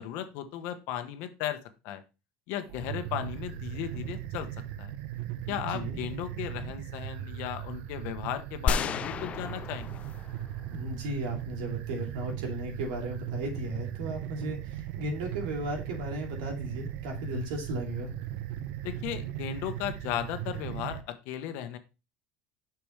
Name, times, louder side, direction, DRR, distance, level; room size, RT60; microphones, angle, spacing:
voice 1, 0.0-2.0 2.5-4.5 4.8-4.9 5.5-10.0 18.8-21.8, left 11 dB, 65° left, 9 dB, 1.1 m, -36 dB
sound 1, 2.6-21.0, right 12 dB, 65° right, 0.8 m, -38 dB
voice 2, 5.5-6.0 10.7-18.1, right 1 dB, 85° right, 1 dB, 2.7 m, -35 dB
sound 2, 8.7-10.9, left 6 dB, 35° left, 0.4 m, -32 dB
7.0 x 5.9 x 3.3 m, 0.29 s
supercardioid pair, 125°, 4 cm